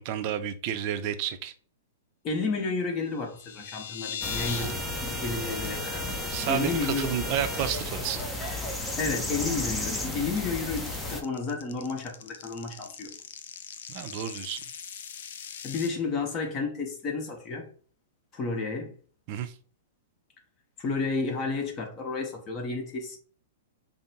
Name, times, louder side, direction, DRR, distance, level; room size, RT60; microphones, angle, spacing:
voice 1, 0.0-1.5 6.3-8.2 13.9-14.6 19.3-19.5, right 10 dB, 45° right, 0.5 m, -31 dB
voice 2, 2.2-6.2 6.5-7.1 9.0-13.1 15.6-17.7 18.3-18.9 20.8-23.2, left 4 dB, 30° left, 1.1 m, -31 dB
sound 1, 3.0-4.7 5.0-5.3 5.6-5.7 6.1-6.3 6.7-7.2 7.5-15.9, left 8 dB, 65° left, 0.4 m, -40 dB
sound 2, 4.2-11.2, left 1 dB, 10° left, 0.6 m, -33 dB
5.1 x 2.0 x 2.8 m
hypercardioid pair, 125°, 0 cm